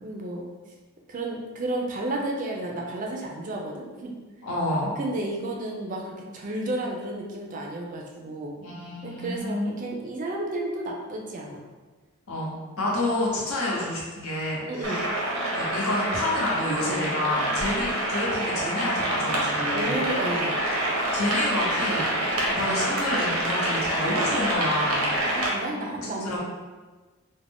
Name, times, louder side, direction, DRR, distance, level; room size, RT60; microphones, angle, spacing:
voice 1, 0.0-0.5 1.1-4.2 5.0-8.6 9.0-11.6 14.7-15.0 19.7-20.6 25.3-26.4, right 1 dB, 35° right, 0 dB, 0.3 m, -32 dB
voice 2, 4.4-5.0 8.6-9.8 12.3-15.1 15.5-20.0 21.1-22.1 22.5-25.1 26.0-26.4, left 1 dB, 85° left, -5 dB, 0.8 m, -29 dB
sound 1, 14.8-25.5, right 1 dB, 85° right, 0.6 m, -27 dB
2.5 x 2.1 x 3.3 m, 1.3 s
head